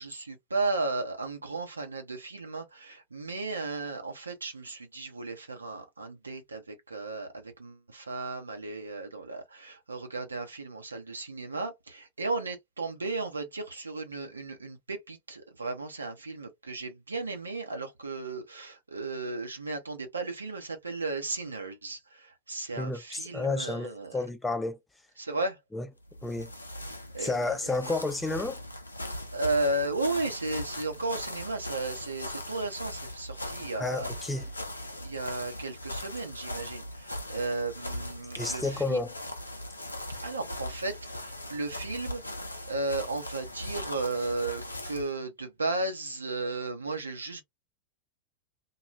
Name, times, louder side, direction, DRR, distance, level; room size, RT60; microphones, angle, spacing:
voice 1, 0.0-24.2 25.2-25.6 27.1-27.5 29.3-34.1 35.0-39.0 40.2-47.4, right 2 dB, 75° right, 0.8 m, -34 dB
voice 2, 22.8-24.8 25.7-25.9 26.2-26.5 27.2-28.6 33.7-34.4 38.4-39.1, left 3 dB, 10° left, 0.6 m, -31 dB
sound 1, 26.0-45.1, left 1 dB, 85° left, 0.5 m, -39 dB
2.3 x 2.3 x 3.0 m
figure-of-eight pair, 90°, 0 cm